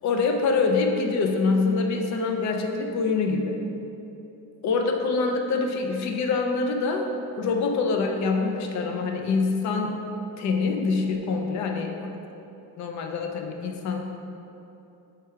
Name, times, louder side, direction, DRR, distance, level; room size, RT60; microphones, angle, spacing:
voice 1, 0.0-3.6 4.6-7.1 7.4-10.0 10.4-11.9 12.8-14.0, left 4 dB, 50° left, 3 dB, 0.5 m, -25 dB
4.7 x 4.4 x 4.7 m, 2.9 s
cardioid pair, 175°, 38 cm